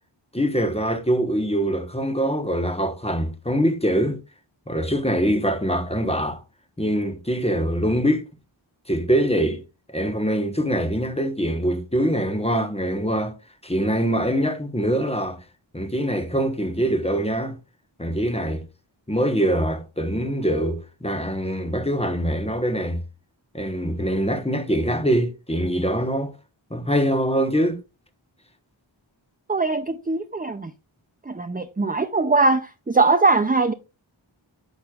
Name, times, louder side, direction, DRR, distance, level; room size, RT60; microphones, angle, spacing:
voice 1, 0.3-4.2 4.7-6.4 6.8-8.2 8.9-9.6 9.9-13.3 13.6-15.4 15.7-17.6 18.0-18.7 19.1-23.0 23.5-26.3 26.7-27.8, equal, 15° left, 1.2 m, -23 dB
voice 2, 29.5-30.7 31.3-33.7, right 3 dB, 20° right, 0.5 m, -21 dB
9.4 x 6.4 x 2.4 m
wide cardioid pair, 45°, 47 cm